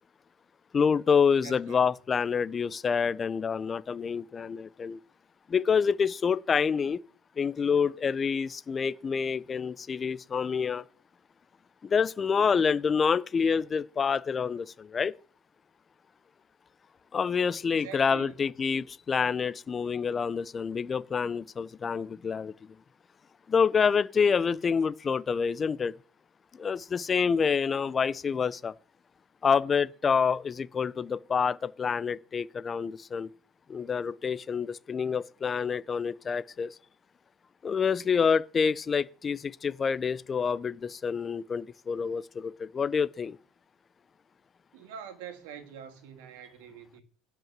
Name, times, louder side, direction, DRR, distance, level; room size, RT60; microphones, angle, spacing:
voice 1, 0.7-5.0 5.5-7.0 7.4-10.8 11.8-15.1 17.1-22.5 23.5-25.9 26.6-28.7 29.4-33.3 33.7-36.7 37.6-43.4, left 6 dB, 20° left, 0.5 m, -27 dB
voice 2, 1.4-1.8 17.7-18.5 44.7-47.0, right 8 dB, 80° right, 2.2 m, -45 dB
10.5 x 5.4 x 7.4 m
cardioid pair, 145°, 0 cm